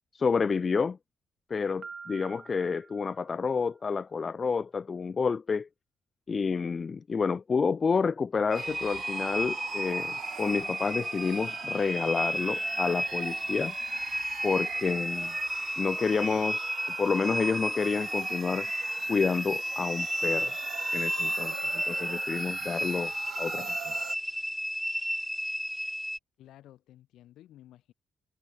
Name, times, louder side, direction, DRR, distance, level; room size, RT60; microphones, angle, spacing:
voice 1, 0.1-1.0 1.5-5.7 6.3-13.7 14.4-15.3 15.8-16.7 17.0-18.7 19.1-20.5 20.9-23.7, left 5 dB, 35° left, 1.6 m, -29 dB
Piano, 1.8-3.7, right 5 dB, 40° right, 2.4 m, -47 dB
sound 1, 8.5-26.2, equal, ahead, 2.6 m, -33 dB
sound 2, 8.5-24.2, right 12 dB, 75° right, 4.8 m, -43 dB
voice 2, 26.4-27.9, left 13 dB, 80° left, 7.8 m, -53 dB
cardioid pair, 90°, 0 cm